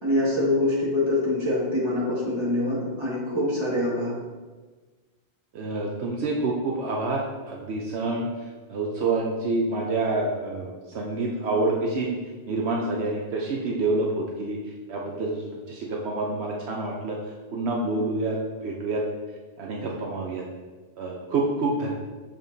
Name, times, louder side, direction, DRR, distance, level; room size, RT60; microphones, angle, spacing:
voice 1, 0.0-4.1, left 1 dB, 25° right, -7 dB, 1.9 m, -24 dB
voice 2, 5.5-8.3 8.7-12.2 12.5-14.6 14.9-17.2 17.5-19.0 19.6-20.4 21.0-22.0, right 2 dB, 75° right, -1 dB, 1.0 m, -27 dB
6.8 x 5.8 x 2.7 m, 1.3 s
omnidirectional pair, 1.1 m